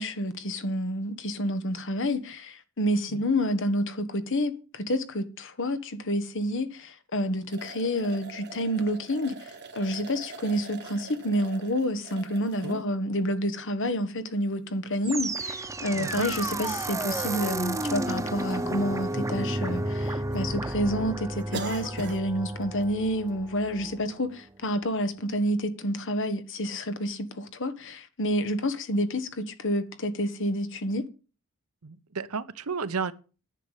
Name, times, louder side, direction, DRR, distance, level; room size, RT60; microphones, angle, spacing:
voice 1, 0.0-31.1, equal, 60° left, 1.4 m, -29 dB
sound 1, 7.5-12.8 13.5-13.6 15.3-15.4 15.6-15.7 16.7-16.8 17.0-17.1 17.8-18.2 18.5-18.6 19.0-19.8 20.0-20.4 20.7-20.8 21.3-22.2 22.6-22.8 23.3-23.4, right 3 dB, 50° right, 1.6 m, -42 dB
sound 2, 15.0-24.2, right 2 dB, 15° right, 0.6 m, -32 dB
voice 2, 15.9-16.3 31.8-33.1, right 5 dB, 75° right, 0.8 m, -33 dB
10.5 x 6.8 x 7.5 m
head